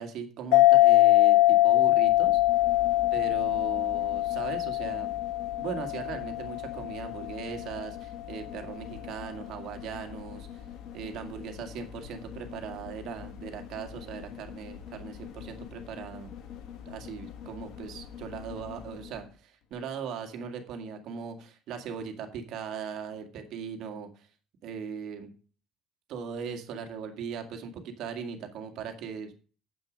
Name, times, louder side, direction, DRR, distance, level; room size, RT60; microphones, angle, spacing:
voice 1, 0.0-2.4 3.1-5.1 5.6-10.6 10.9-16.3 16.9-24.3 24.6-25.3 26.1-29.3, right 7 dB, 50° right, 6 dB, 2.0 m, -39 dB
sound 1, 0.5-7.6, left 17 dB, 80° left, 0.9 m, -23 dB
sound 2, 2.0-19.3 19.7-19.8, left 9 dB, 50° left, 1.4 m, -44 dB
9.5 x 7.9 x 5.1 m, 0.38 s
cardioid pair, 175°, 0 cm